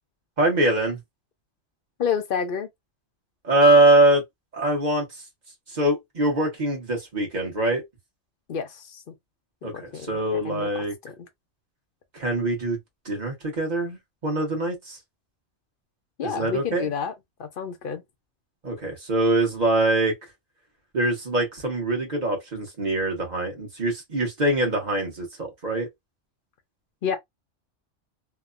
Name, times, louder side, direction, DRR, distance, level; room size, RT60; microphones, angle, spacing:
voice 1, 0.4-1.0 3.4-4.2 4.5-5.1 5.7-7.8 9.6-10.9 12.1-12.8 13.0-15.0 16.2-16.9 18.6-20.2 20.9-25.9, right 2 dB, 40° right, 1.1 m, -23 dB
voice 2, 2.0-2.7 8.5-9.1 9.6-10.2 10.4-10.7 16.2-17.1 17.4-18.0 27.0-27.2, left 7 dB, 55° left, 0.7 m, -29 dB
2.9 x 2.1 x 2.4 m
omnidirectional pair, 1.3 m